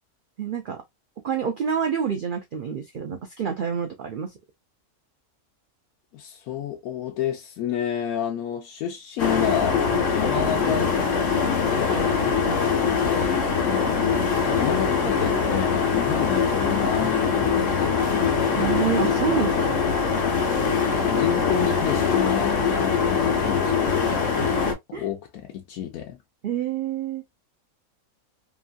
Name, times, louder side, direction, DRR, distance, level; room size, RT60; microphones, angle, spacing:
voice 1, 0.4-0.8 1.2-4.3 12.5-12.6 18.5-19.7 22.7-22.8 24.9-25.0 26.4-27.2, right 8 dB, 85° right, 0.4 m, -27 dB
voice 2, 6.1-12.2 13.6-14.0 14.5-18.0 21.1-23.7 24.1-24.3 24.9-26.2, left 9 dB, 85° left, 1.1 m, -30 dB
sound 1, 9.2-24.7, left 5 dB, 60° left, 1.1 m, -22 dB
3.0 x 2.5 x 2.3 m
omnidirectional pair, 1.5 m